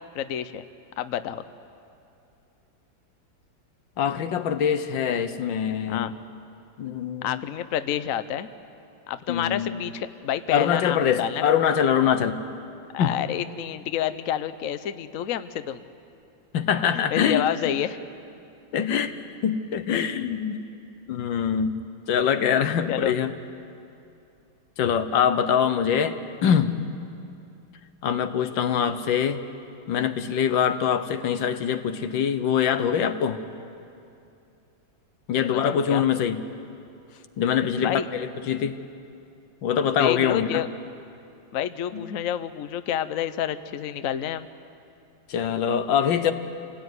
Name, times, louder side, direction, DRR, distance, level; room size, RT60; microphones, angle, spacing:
voice 1, 0.1-0.6 1.0-1.4 5.8-6.1 7.2-8.5 9.1-11.4 12.9-15.8 16.9-18.0 22.9-23.1 35.5-36.0 37.8-38.1 40.0-40.7 41.5-44.5, left 10 dB, 60° left, 12 dB, 0.9 m, -29 dB
voice 2, 4.0-6.1 6.8-7.4 9.3-9.8 10.5-12.4 13.0-13.2 16.5-17.4 18.7-19.2 19.4-20.6 21.1-21.8 22.1-23.3 24.8-26.8 28.0-29.4 29.9-33.4 35.3-36.4 37.4-38.7 39.6-40.6 41.9-42.0 45.3-46.3, left 8 dB, 75° left, 10 dB, 1.7 m, -24 dB
26.5 x 18.0 x 9.6 m, 2.6 s
omnidirectional pair, 2.1 m